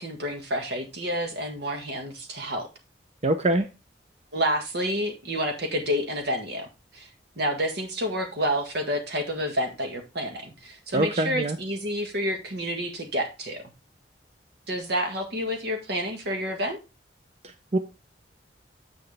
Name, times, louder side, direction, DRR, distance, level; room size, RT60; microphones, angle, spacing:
voice 1, 0.0-2.7 4.3-6.7 6.9-7.1 7.4-13.7 14.7-16.8, equal, 65° right, 4 dB, 1.8 m, -29 dB
voice 2, 3.2-3.7 10.9-11.6 17.7-17.8, right 1 dB, 40° right, 8 dB, 0.7 m, -23 dB
7.9 x 6.2 x 3.4 m, 0.26 s
head